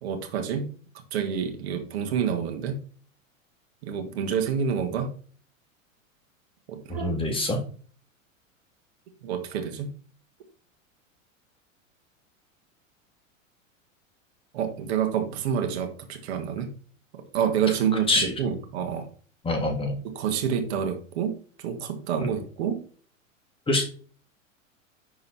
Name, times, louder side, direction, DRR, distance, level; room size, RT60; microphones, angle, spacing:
voice 1, 0.0-0.7 1.1-2.8 3.8-5.1 6.7-7.2 9.2-9.9 14.5-16.7 17.3-19.1 20.0-21.4 21.6-22.8, right 7 dB, 50° right, 5 dB, 1.9 m, -28 dB
voice 2, 6.9-7.6 18.1-18.3 19.4-20.0 22.2-22.3 23.7-23.8, left 2 dB, 15° left, 3 dB, 1.8 m, -25 dB
11.0 x 4.0 x 4.4 m, 0.42 s
figure-of-eight pair, 90°, 40 cm